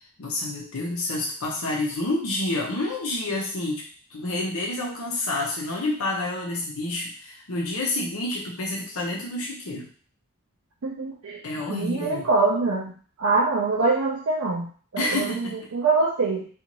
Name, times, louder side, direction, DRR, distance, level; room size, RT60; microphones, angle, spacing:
voice 1, 0.2-3.8 4.1-9.9 11.4-12.3 15.0-15.5, left 2 dB, 90° left, -2 dB, 0.7 m, -28 dB
voice 2, 10.8-11.4 11.7-12.9 13.2-16.5, right 3 dB, 70° right, -5 dB, 0.5 m, -24 dB
2.6 x 2.4 x 2.9 m, 0.43 s
head